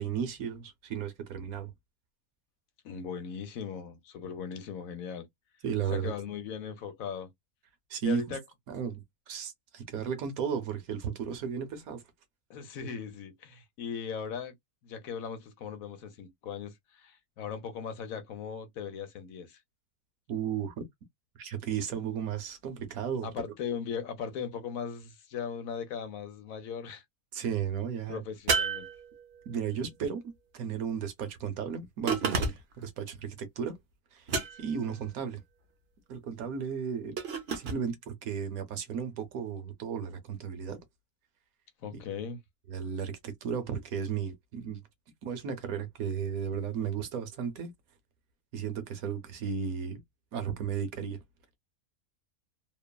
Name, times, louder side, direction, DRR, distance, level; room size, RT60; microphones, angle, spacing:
voice 1, 0.0-1.7 5.6-6.1 7.9-8.4 8.7-12.0 20.3-20.8 21.4-23.4 27.3-28.2 29.5-30.2 30.5-33.8 34.1-35.4 36.1-37.2 37.5-40.8 41.9-42.0 42.7-44.8 45.2-47.7 48.5-50.0 50.3-51.2, right 7 dB, 70° right, 1.1 m, -34 dB
voice 2, 2.8-5.3 5.9-7.3 8.0-8.4 12.5-14.5 14.8-19.6 23.2-27.0 28.1-28.9 34.5-34.6 34.9-35.0 41.8-42.4, left 7 dB, 70° left, 1.0 m, -38 dB
sound 1, 28.5-29.6 32.1-32.8 34.3-34.9 37.2-37.8, right 4 dB, 55° right, 0.8 m, -31 dB
3.0 x 2.1 x 2.2 m
omnidirectional pair, 1.6 m